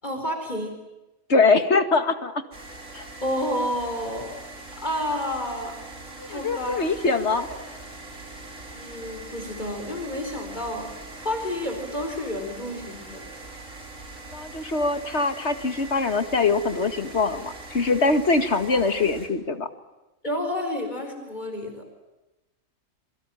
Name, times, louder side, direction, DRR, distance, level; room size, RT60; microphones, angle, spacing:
voice 1, 0.0-0.7 3.2-4.4 4.8-5.8 6.2-7.1 8.7-10.9 11.2-13.2 18.7-18.8 20.2-21.8, left 1 dB, 35° left, 5 dB, 4.6 m, -30 dB
voice 2, 1.3-2.3 2.9-3.0 6.2-7.5 14.3-19.7, left 3 dB, 60° left, 9 dB, 2.2 m, -23 dB
sound 1, 2.5-19.3, right 2 dB, 75° right, 4.8 m, -42 dB
27.0 x 24.0 x 9.0 m, 1.0 s
omnidirectional pair, 1.3 m